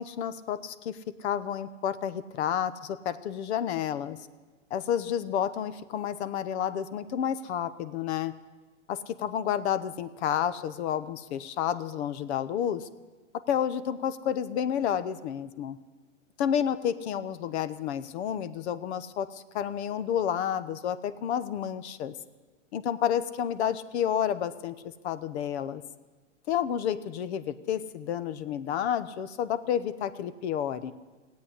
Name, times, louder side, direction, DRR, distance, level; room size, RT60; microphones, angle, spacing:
voice 1, 0.0-4.2 4.7-8.3 8.9-12.9 13.5-15.8 16.4-22.1 22.7-24.7 25.0-25.8 26.5-30.9, left 9 dB, 60° left, 14 dB, 1.0 m, -30 dB
16.5 x 8.5 x 9.8 m, 1.3 s
hypercardioid pair, 125°, 38 cm